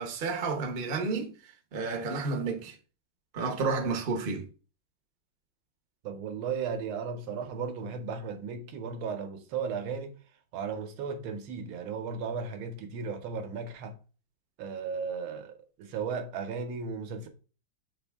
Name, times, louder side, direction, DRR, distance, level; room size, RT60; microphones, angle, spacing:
voice 1, 0.0-1.3 1.7-2.7 3.3-4.5, right 4 dB, 50° right, 0.6 m, -31 dB
voice 2, 6.0-10.1 10.5-14.0 14.6-17.3, right 5 dB, 85° right, 1.6 m, -35 dB
5.7 x 2.6 x 3.4 m
omnidirectional pair, 2.2 m